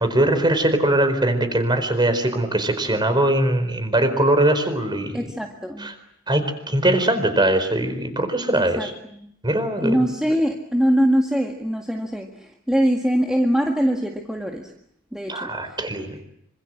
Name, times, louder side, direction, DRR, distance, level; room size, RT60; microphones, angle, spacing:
voice 1, 0.0-5.2 5.8-5.9 6.3-8.9 9.4-10.1 15.3-16.2, right 1 dB, 20° right, 9 dB, 4.5 m, -21 dB
voice 2, 5.1-5.9 8.5-9.3 9.8-14.7 15.1-15.8, equal, 5° right, 1 dB, 1.8 m, -23 dB
27.0 x 26.0 x 7.6 m, 0.72 s
head